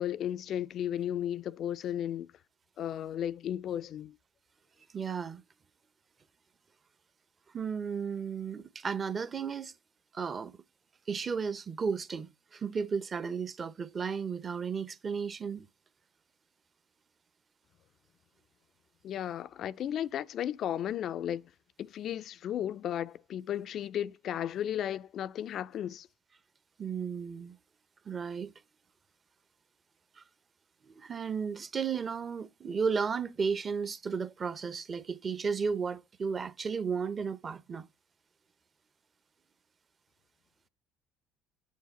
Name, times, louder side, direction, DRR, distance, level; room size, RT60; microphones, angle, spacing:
voice 1, 0.0-2.3 2.8-4.1 19.0-21.5 21.8-26.1, left 10 dB, 55° left, 0.3 m, -34 dB
voice 2, 4.9-5.4 7.5-9.7 10.1-10.5 11.1-15.7 26.8-27.6 28.1-28.5 30.2-30.3 30.9-37.9, right 6 dB, 35° right, 0.7 m, -34 dB
7.8 x 4.7 x 4.1 m
supercardioid pair, 100°, 0 cm